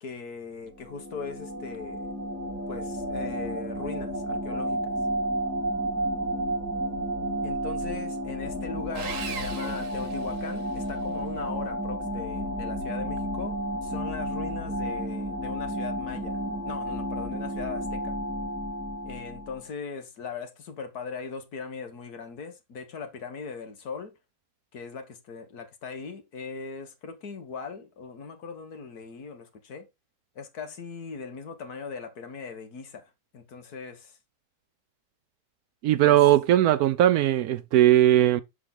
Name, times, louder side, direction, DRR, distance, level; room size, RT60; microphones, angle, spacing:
voice 1, 0.0-2.1 2.7-4.9 7.4-13.6 13.8-18.2 19.0-24.1 24.7-29.9 30.4-34.2 36.0-36.2, left 5 dB, 70° left, 1.8 m, -39 dB
sound 1, 0.7-19.6, equal, 10° right, 1.3 m, -32 dB
Sawing, 8.9-10.8, right 6 dB, 55° right, 1.2 m, -38 dB
voice 2, 35.8-38.4, right 13 dB, 70° right, 1.0 m, -19 dB
6.6 x 6.3 x 3.7 m
omnidirectional pair, 1.7 m